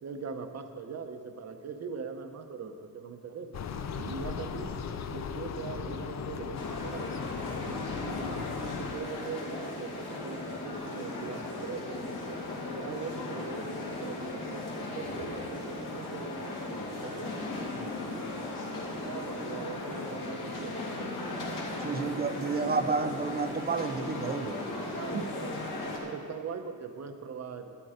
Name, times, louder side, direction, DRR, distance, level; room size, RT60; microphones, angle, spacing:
voice 1, 0.0-3.5 4.1-4.8 5.1-7.1 8.0-12.4 12.7-18.3 18.8-21.2 21.9-23.0 24.9-25.6 26.0-27.8, right 5 dB, 50° right, 7 dB, 0.9 m, -42 dB
sound 1, 3.5-9.0, left 6 dB, 55° left, 0.7 m, -37 dB
sound 2, 6.5-26.0, left 2 dB, 70° left, 2.6 m, -37 dB
voice 2, 21.8-24.6 25.1-25.3, right 4 dB, 30° right, 9 dB, 0.6 m, -31 dB
11.5 x 11.5 x 5.0 m, 2.1 s
wide cardioid pair, 150°, 33 cm